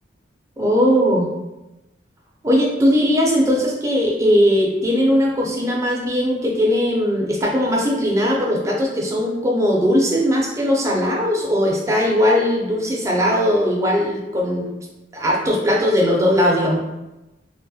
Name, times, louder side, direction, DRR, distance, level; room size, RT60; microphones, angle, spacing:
voice 1, 0.6-1.3 2.4-14.7 15.1-16.8, equal, 15° right, -2 dB, 0.4 m, -19 dB
2.3 x 2.0 x 2.6 m, 0.99 s
head